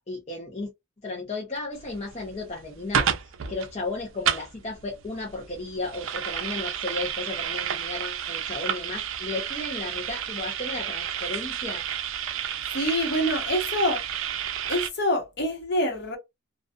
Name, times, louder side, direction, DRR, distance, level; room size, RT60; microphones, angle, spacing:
voice 1, 0.1-0.7 1.0-3.1 3.5-11.8, left 2 dB, 30° left, 0.6 m, -34 dB
sound 1, 1.8-14.9, right 8 dB, 70° right, 0.4 m, -31 dB
voice 2, 12.7-14.0 14.7-16.2, left 1 dB, 50° left, 1.0 m, -26 dB
2.4 x 2.3 x 2.4 m
head